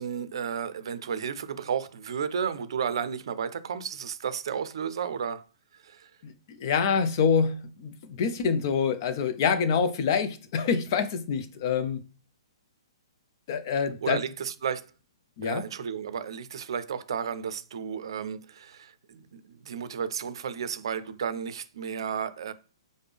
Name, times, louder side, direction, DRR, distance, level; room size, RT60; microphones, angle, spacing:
voice 1, 0.0-5.4 5.7-6.1 14.0-14.9 15.4-22.5, right 7 dB, 65° right, 0.5 m, -33 dB
voice 2, 6.2-12.0 13.5-14.2 15.4-15.6, left 6 dB, 45° left, 0.6 m, -26 dB
5.0 x 2.1 x 3.3 m
hypercardioid pair, 130°, 3 cm